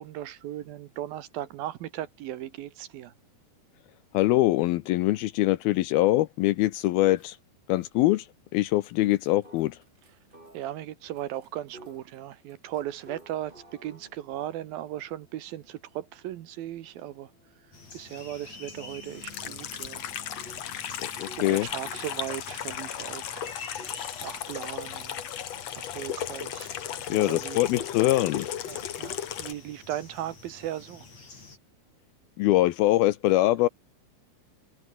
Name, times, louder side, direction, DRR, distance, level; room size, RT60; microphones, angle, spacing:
voice 1, 0.0-3.1 10.5-17.3 17.9-20.3 20.6-21.0 21.4-23.6 24.2-25.2 25.8-26.7 27.1-27.6 28.7-31.1, right 12 dB, 70° right, 2.6 m, -37 dB
voice 2, 4.1-7.4 7.7-8.3 8.5-9.8 21.0-21.7 27.1-28.5 32.4-33.7, left 16 dB, 75° left, 2.4 m, -23 dB
sound 1, 7.2-7.5 7.8-8.1 8.8-10.7 11.1-22.2 23.8-23.9, right 1 dB, 10° right, 5.3 m, -55 dB
sound 2, 17.7-31.6, left 3 dB, 40° left, 7.4 m, -48 dB
Water tap faucet / Sink (filling or washing), 19.2-29.5, left 10 dB, 55° left, 2.0 m, -36 dB
omnidirectional pair, 4.8 m